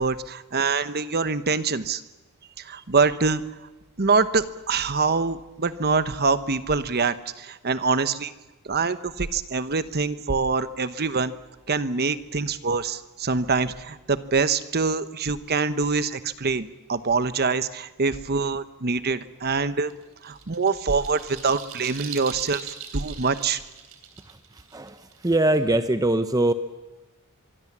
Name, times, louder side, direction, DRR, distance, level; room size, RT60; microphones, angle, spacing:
voice 1, 0.0-2.0 2.6-3.4 4.0-8.3 8.6-11.3 11.7-19.9 20.2-23.6, right 4 dB, 45° right, 12 dB, 1.0 m, -25 dB
sound 1, 19.9-25.7, right 8 dB, 75° right, 3.2 m, -41 dB
voice 2, 25.2-26.5, right 1 dB, 15° right, 10 dB, 0.7 m, -21 dB
24.5 x 23.5 x 7.4 m, 1.1 s
head